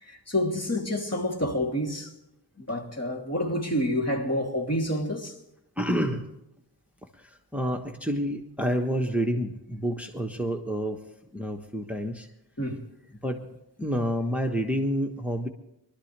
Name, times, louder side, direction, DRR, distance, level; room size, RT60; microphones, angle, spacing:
voice 1, 0.0-2.1 2.6-5.4 12.6-12.9, left 1 dB, 40° left, 3.2 m, -28 dB
voice 2, 5.8-6.3 7.1-11.0 11.3-12.3 13.2-13.5 13.8-15.5, equal, 5° right, 1.3 m, -29 dB
23.5 x 12.5 x 3.4 m
wide cardioid pair, 55°, 40 cm